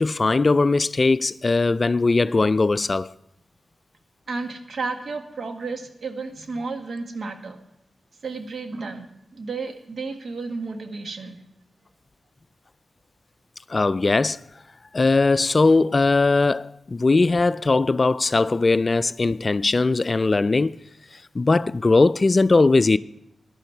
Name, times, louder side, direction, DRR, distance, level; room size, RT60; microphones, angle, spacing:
voice 1, 0.0-3.1 13.7-14.4 14.9-20.8 21.3-23.0, left 3 dB, 40° left, 0.3 m, -19 dB
voice 2, 4.3-7.6 8.2-11.4, right 4 dB, 65° right, 1.5 m, -32 dB
13.5 x 10.5 x 4.5 m
cardioid pair, 60°, 0 cm